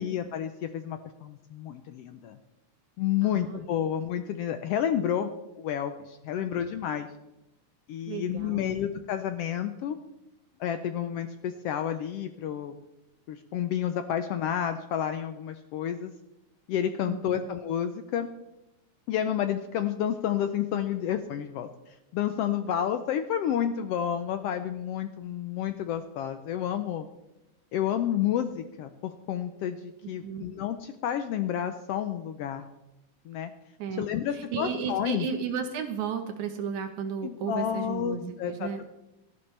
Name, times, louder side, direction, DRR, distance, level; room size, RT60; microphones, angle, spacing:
voice 1, 0.0-2.4 3.0-5.3 5.6-7.1 7.9-10.0 10.6-12.8 13.3-16.1 16.7-18.3 19.1-27.1 27.7-32.7 33.3-33.5 34.0-35.3 37.2-38.8, left 10 dB, 90° left, 9 dB, 1.3 m, -30 dB
voice 2, 3.2-3.6 6.4-6.7 8.1-8.8 17.0-17.5 30.2-30.5 33.8-34.1 34.3-38.8, right 6 dB, 75° right, 6 dB, 2.3 m, -34 dB
18.0 x 13.0 x 3.3 m, 0.92 s
omnidirectional pair, 3.5 m